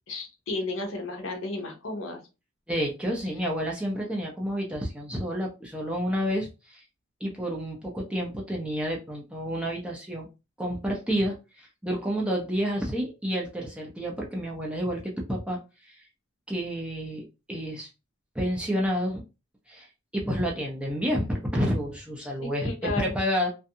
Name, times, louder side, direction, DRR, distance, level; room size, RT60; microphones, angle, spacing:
voice 1, 0.1-2.2 22.4-23.2, left 2 dB, 70° left, 3 dB, 0.7 m, -33 dB
voice 2, 2.7-6.8 7.2-10.3 10.6-16.0 16.5-17.9 18.3-19.2 19.7-19.9 20.1-23.5, equal, 5° right, -2 dB, 0.5 m, -30 dB
2.5 x 2.2 x 2.6 m, 0.28 s
head